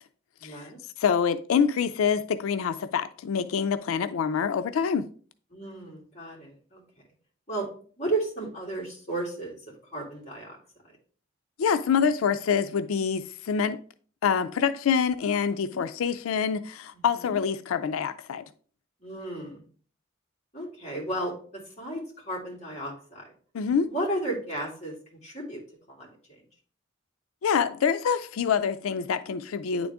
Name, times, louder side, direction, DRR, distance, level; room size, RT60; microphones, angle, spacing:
voice 1, 0.4-0.8 5.5-6.8 7.5-7.7 8.0-9.6 9.9-10.6 15.7-15.8 16.9-17.4 19.0-19.6 20.5-23.2 23.9-25.6 25.9-26.2, right 2 dB, 30° left, 2.5 m, -34 dB
voice 2, 1.0-5.0 11.6-13.8 14.2-18.4 23.5-23.9 27.4-29.9, left 6 dB, 85° left, 0.4 m, -26 dB
9.3 x 3.8 x 3.5 m
head